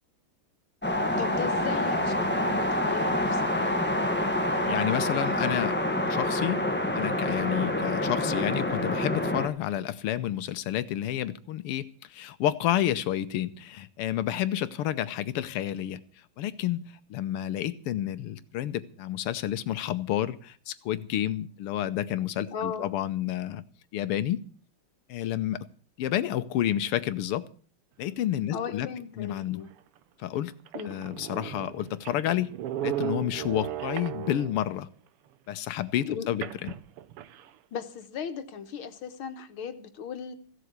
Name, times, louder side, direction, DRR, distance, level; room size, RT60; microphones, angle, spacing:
sound 1, 0.8-9.5, left 1 dB, 5° left, 1.1 m, -27 dB
voice 1, 1.2-3.8 22.5-22.9 28.5-29.7 30.7-31.0 36.1-36.5 37.7-40.3, left 7 dB, 70° left, 8 dB, 2.1 m, -37 dB
voice 2, 4.7-5.8 6.1-6.6 7.0-16.0 16.4-16.8 17.1-23.6 23.9-24.4 25.1-25.7 26.0-27.4 28.0-28.9 29.2-29.6 30.2-30.6 30.9-32.5 32.8-34.9 35.5-36.7, left 12 dB, 85° left, 13 dB, 1.8 m, -30 dB
sound 2, 29.7-29.8 30.4-30.5 30.7-34.7 36.4-37.5, right 12 dB, 90° right, 1.8 m, -36 dB
15.5 x 7.9 x 8.1 m, 0.43 s
omnidirectional pair, 2.4 m